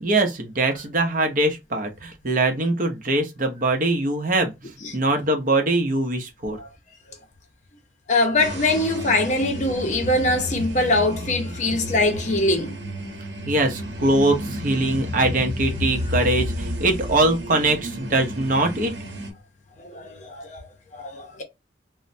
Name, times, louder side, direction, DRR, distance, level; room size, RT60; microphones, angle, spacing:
voice 1, 0.0-6.6 13.5-18.9, right 2 dB, 45° right, 0.7 m, -22 dB
voice 2, 8.1-12.8 19.8-21.4, left 2 dB, 40° left, 0.6 m, -23 dB
sound 1, 8.4-19.3, equal, 85° right, 0.8 m, -31 dB
3.0 x 2.1 x 2.6 m
head